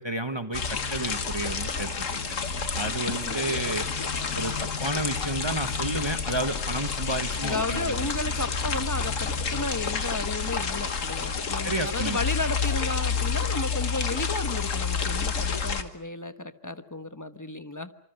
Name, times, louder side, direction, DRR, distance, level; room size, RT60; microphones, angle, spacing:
voice 1, 0.0-1.9 2.7-3.9 4.3-7.9 11.6-12.2, right 2 dB, 20° right, 8 dB, 1.1 m, -31 dB
sound 1, 0.5-15.8, left 5 dB, 90° left, 1.9 m, -29 dB
voice 2, 7.4-17.9, left 2 dB, 15° left, 9 dB, 1.1 m, -33 dB
26.5 x 25.5 x 6.6 m, 0.64 s
omnidirectional pair, 1.3 m